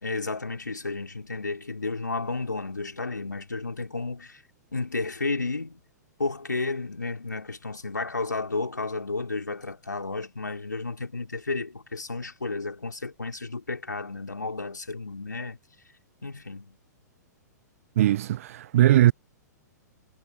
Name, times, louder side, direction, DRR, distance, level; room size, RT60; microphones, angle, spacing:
voice 1, 0.0-4.4 4.7-5.8 6.2-15.6 16.2-16.8, left 3 dB, 85° left, 4.0 m, -32 dB
voice 2, 18.0-19.1, right 13 dB, 50° right, 0.4 m, -20 dB
figure-of-eight pair, 110°, 10 cm